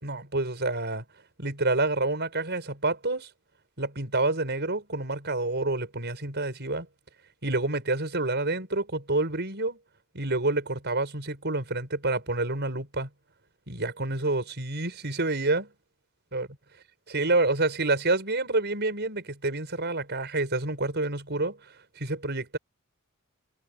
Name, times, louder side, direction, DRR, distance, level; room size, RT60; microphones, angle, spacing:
voice 1, 0.0-1.0 1.4-3.3 3.8-6.9 7.4-9.8 10.1-13.1 13.7-15.7 16.3-16.5 17.1-21.6 22.0-22.6, right 2 dB, 50° right, 6.4 m, -28 dB
head